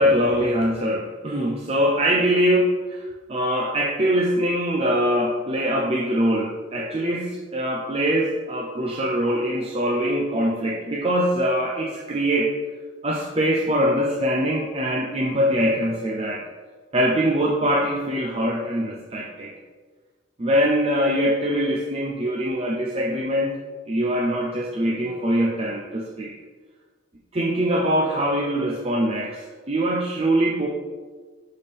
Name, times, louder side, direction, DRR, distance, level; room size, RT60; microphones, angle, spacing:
voice 1, 0.0-12.5 13.0-16.4 16.9-19.5 20.4-23.6 23.9-26.3 27.3-30.7, equal, 30° right, -2 dB, 0.7 m, -23 dB
10.5 x 4.4 x 3.5 m, 1.4 s
head